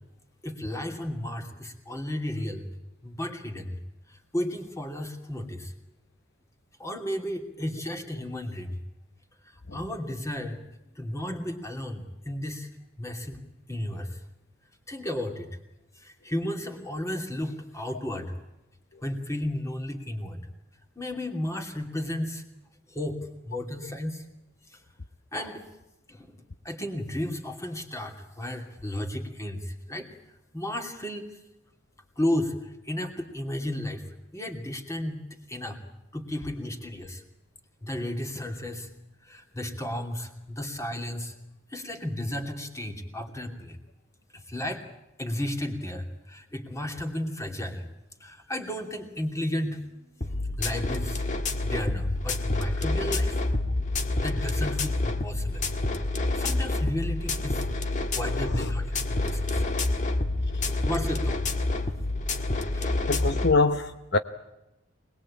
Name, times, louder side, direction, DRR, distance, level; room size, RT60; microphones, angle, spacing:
voice 1, 0.4-2.7 3.0-3.8 4.1-5.7 6.8-8.8 9.4-10.6 11.0-12.7 13.0-13.4 13.7-14.2 14.9-15.6 15.9-18.3 19.0-20.5 21.0-22.4 22.9-24.2 24.7-24.8 25.3-25.6 26.1-26.3 26.6-30.1 30.5-31.4 32.2-34.0 34.3-35.2 35.5-35.8 36.1-37.2 37.8-38.9 39.2-41.3 41.7-43.8 44.3-44.8 45.2-47.8 48.2-53.5 54.2-55.7 56.3-59.7 60.7-61.5 62.7-63.0, left 1 dB, 15° left, 5 dB, 2.7 m, -33 dB
sound 1, 50.2-63.5, left 2 dB, 35° left, 1.8 m, -28 dB
voice 2, 58.2-58.7 59.6-59.7 60.5-60.8 63.1-64.2, left 3 dB, 55° left, 9 dB, 0.9 m, -26 dB
25.0 x 20.5 x 8.7 m, 0.96 s
head